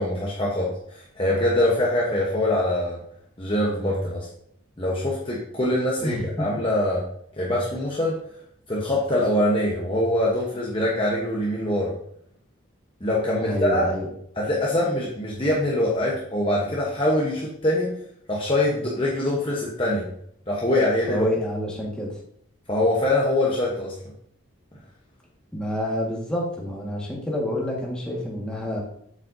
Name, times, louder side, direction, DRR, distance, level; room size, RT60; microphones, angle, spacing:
voice 1, 0.0-3.0 3.4-4.3 4.8-7.0 7.3-8.2 8.7-11.9 13.0-13.9 14.4-17.9 18.3-20.1 20.5-21.2 22.7-24.0, left 1 dB, 25° left, -4 dB, 1.0 m, -23 dB
voice 2, 6.0-6.5 13.4-14.1 21.1-22.1 25.5-28.8, left 1 dB, 5° left, -4 dB, 1.6 m, -28 dB
7.5 x 7.5 x 2.7 m, 0.68 s
head